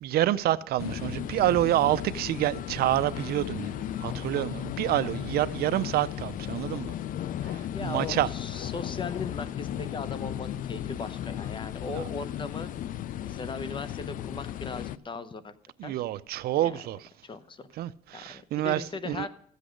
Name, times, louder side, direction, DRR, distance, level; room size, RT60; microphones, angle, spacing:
voice 1, 0.0-6.9 7.4-8.3 11.9-12.0 15.8-17.1 17.8-19.3, right 14 dB, 65° right, 0.5 m, -28 dB
sound 1, 0.8-15.0, left 11 dB, 55° left, 0.4 m, -35 dB
voice 2, 7.7-12.7 13.2-15.6 15.8-16.0 16.6-16.7 17.2-17.7 18.1-19.3, left 4 dB, 30° left, 0.8 m, -38 dB
14.0 x 8.2 x 5.1 m
cardioid pair, 110°, 17 cm